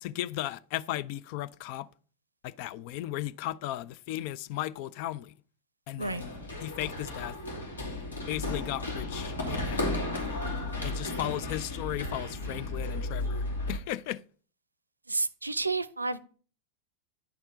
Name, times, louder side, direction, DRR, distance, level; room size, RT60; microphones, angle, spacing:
voice 1, 0.0-1.9 2.4-5.3 5.9-6.3 6.6-7.4 8.3-10.0 10.8-14.2, left 14 dB, 45° left, 0.4 m, -36 dB
Run, 6.0-13.8, left 2 dB, 75° left, 3.0 m, -34 dB
voice 2, 15.1-16.2, right 3 dB, 80° right, 0.5 m, -30 dB
10.5 x 4.4 x 6.9 m
figure-of-eight pair, 90°, 0 cm